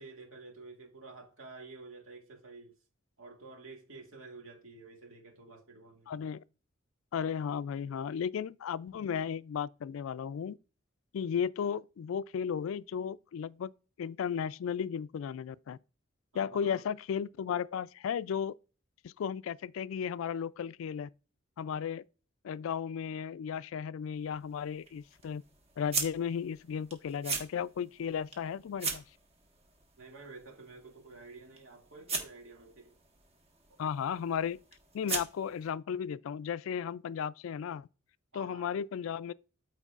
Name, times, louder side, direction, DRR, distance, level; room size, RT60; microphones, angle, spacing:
voice 1, 0.0-2.7 3.2-6.1 16.3-16.9 30.0-33.0 38.3-38.8, right 3 dB, 85° right, 2.2 m, -50 dB
voice 2, 6.1-6.4 7.1-10.6 11.1-13.7 14.0-15.8 16.3-18.5 19.0-21.1 21.6-22.0 22.4-25.4 25.8-29.0 33.8-34.6 34.9-37.9 38.3-39.3, left 7 dB, 75° left, 0.3 m, -35 dB
sound 1, 24.1-35.7, right 4 dB, 30° right, 1.4 m, -41 dB
13.5 x 4.6 x 2.4 m
head